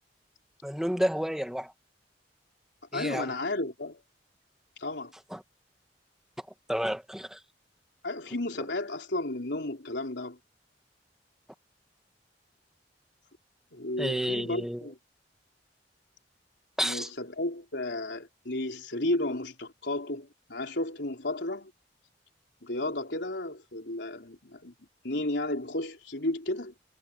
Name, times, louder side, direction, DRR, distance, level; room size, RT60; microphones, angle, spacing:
voice 1, 0.6-1.7 2.9-3.3 5.3-5.4 6.7-7.4 14.0-14.8 16.8-17.1, equal, 5° right, 1.8 m, -30 dB
voice 2, 2.9-4.0 4.8-5.1 8.0-10.4 13.7-15.0 16.8-21.7 22.6-24.7 25.0-26.9, left 2 dB, 80° left, 3.8 m, -33 dB
head